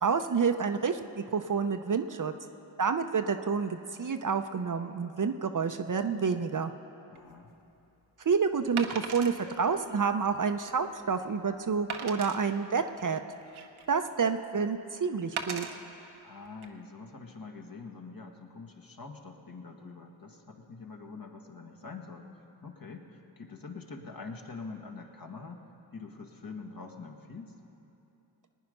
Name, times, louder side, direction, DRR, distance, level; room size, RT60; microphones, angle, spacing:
voice 1, 0.0-2.3 2.8-6.7 8.2-13.2 13.9-15.7, right 5 dB, 40° right, 8 dB, 0.7 m, -29 dB
voice 2, 7.1-7.6 16.2-22.3 22.6-25.6 25.9-27.5, left 4 dB, 45° left, 2 dB, 1.7 m, -45 dB
Wood, 7.2-7.3 8.8-9.4 10.0-10.1 10.6-10.7 11.9-12.4 13.2-13.9 15.4-15.7 16.5-16.7, right 6 dB, 80° right, 1.1 m, -37 dB
20.0 x 9.4 x 5.4 m, 2.8 s
cardioid pair, 40°, 48 cm